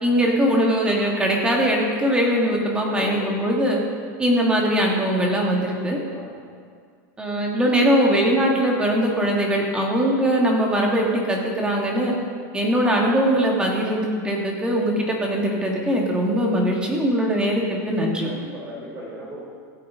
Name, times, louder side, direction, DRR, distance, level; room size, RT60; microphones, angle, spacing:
voice 1, 0.0-3.8 4.2-6.0 7.2-12.1 12.5-18.3, equal, 10° right, -1 dB, 1.6 m, -21 dB
voice 2, 2.8-3.6 6.1-6.4 18.2-19.4, equal, 25° right, -5 dB, 3.4 m, -36 dB
16.0 x 8.9 x 3.7 m, 2.1 s
supercardioid pair, 155°, 10 cm